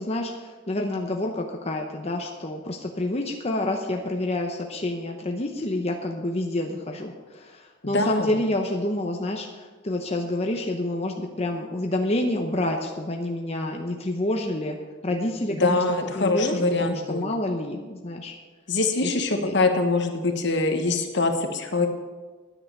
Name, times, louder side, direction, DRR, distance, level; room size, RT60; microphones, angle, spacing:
voice 1, 0.0-14.8 15.0-18.3 19.0-19.2 19.5-19.6, left 1 dB, 30° left, 2 dB, 0.9 m, -28 dB
voice 2, 7.8-8.4 15.5-17.3 18.7-21.9, left 3 dB, 60° left, 6 dB, 1.3 m, -24 dB
10.5 x 9.3 x 6.8 m, 1.4 s
head